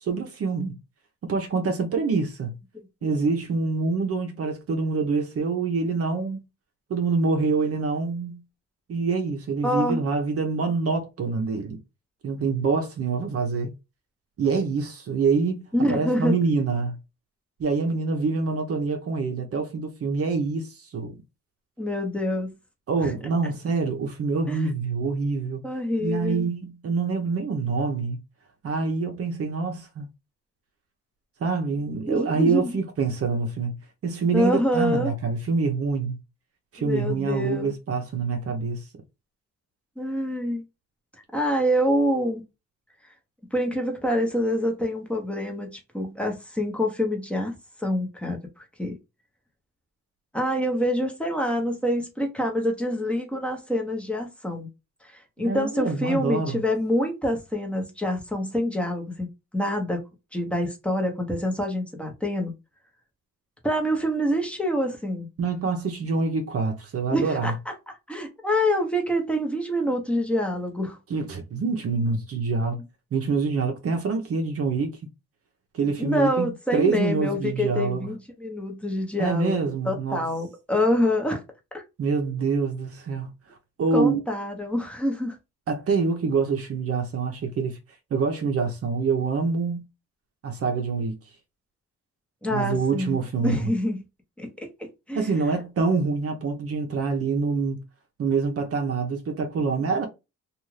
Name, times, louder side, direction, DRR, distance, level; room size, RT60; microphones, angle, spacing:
voice 1, 0.0-0.8 1.2-2.5 3.0-6.4 6.9-8.4 8.9-11.8 12.2-13.7 14.4-15.6 15.9-17.0 17.6-21.1 22.9-25.6 26.0-28.2 28.6-30.1 31.4-33.8 34.0-36.2 36.7-38.9 55.4-56.6 65.4-67.5 71.1-72.8 73.1-75.0 75.7-78.1 79.2-80.2 82.0-83.3 83.8-84.2 85.7-87.8 88.1-89.8 90.4-91.2 92.5-93.7 95.2-97.8 98.2-100.1, right 4 dB, 50° right, 0.7 m, -26 dB
voice 2, 9.6-10.0 15.7-16.4 21.8-22.5 23.0-23.1 24.5-24.7 25.6-26.5 32.1-32.8 34.3-35.1 36.8-37.7 40.0-40.6 41.3-42.4 43.5-49.0 50.3-54.7 55.0-59.3 59.5-60.0 60.3-62.5 63.6-65.3 67.1-67.7 68.1-71.0 72.7-72.8 75.8-81.4 81.7-81.8 83.9-85.4 92.4-93.2 93.4-94.0 94.4-94.5 95.1-95.3, equal, 5° left, 0.9 m, -26 dB
2.5 x 2.4 x 3.1 m
cardioid pair, 90°, 30 cm